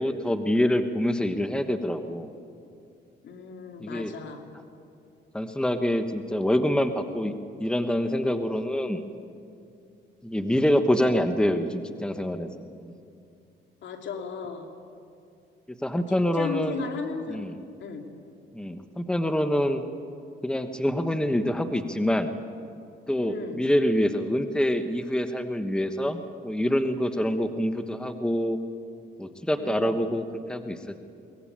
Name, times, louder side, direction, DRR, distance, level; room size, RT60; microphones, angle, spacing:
voice 1, 0.0-2.3 3.8-4.1 5.3-7.3 7.6-9.0 10.2-12.9 15.8-16.8 17.3-17.6 18.5-19.8 20.4-22.3 23.1-28.6 29.2-31.0, equal, 5° left, 8 dB, 1.2 m, -26 dB
voice 2, 3.2-4.4 13.8-14.7 16.1-17.4 17.8-18.0 23.3-23.6 27.3-27.5 29.6-29.9, left 5 dB, 70° left, 4 dB, 2.7 m, -36 dB
22.5 x 18.5 x 8.8 m, 2.5 s
cardioid pair, 90°, 20 cm